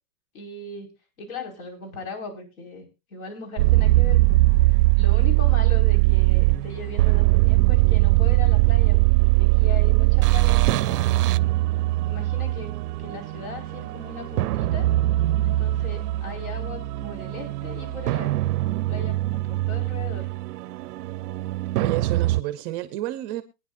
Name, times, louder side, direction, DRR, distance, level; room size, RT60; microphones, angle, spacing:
voice 1, 0.3-0.9 1.2-2.9 3.1-4.4 4.7-11.3 12.0-12.7 13.0-14.9 15.4-20.3, left 4 dB, 65° left, 5.2 m, -38 dB
sound 1, 3.6-22.4, right 18 dB, 85° right, 0.6 m, -21 dB
voice 2, 21.8-23.4, right 14 dB, 25° right, 0.6 m, -30 dB
22.5 x 9.9 x 2.5 m
supercardioid pair, 155°, 45 cm